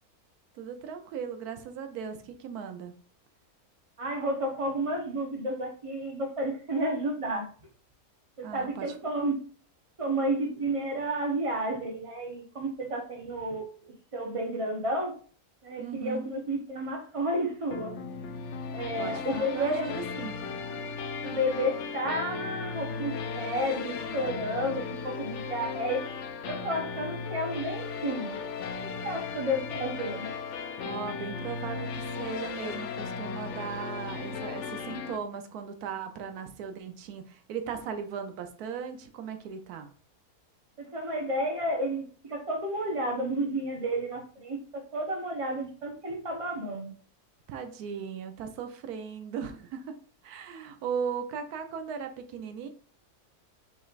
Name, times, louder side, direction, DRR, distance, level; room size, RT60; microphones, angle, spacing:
voice 1, 0.5-2.9 8.4-9.1 15.8-16.3 19.0-20.4 30.8-39.9 47.5-50.0 50.2-52.7, right 7 dB, 85° right, 7 dB, 1.1 m, -37 dB
voice 2, 4.0-7.5 8.4-9.4 10.0-15.1 15.6-17.9 18.7-19.9 21.2-26.0 26.5-28.4 29.0-30.3 40.8-46.9, right 1 dB, 30° right, 2 dB, 0.7 m, -31 dB
sound 1, 17.7-35.2, left 5 dB, 65° left, 0.8 m, -36 dB
5.5 x 3.1 x 2.4 m, 0.42 s
omnidirectional pair, 1.6 m